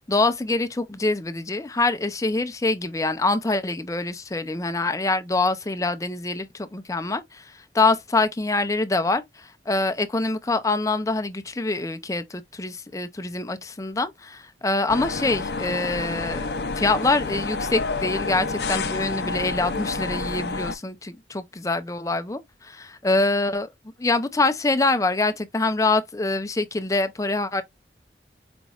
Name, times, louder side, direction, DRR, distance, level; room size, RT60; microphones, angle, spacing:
voice 1, 0.1-16.5 16.8-23.7 24.0-27.6, left 3 dB, 20° left, 0.5 m, -25 dB
sound 1, 14.9-20.7, left 3 dB, 65° left, 0.5 m, -29 dB
5.1 x 3.0 x 2.4 m
head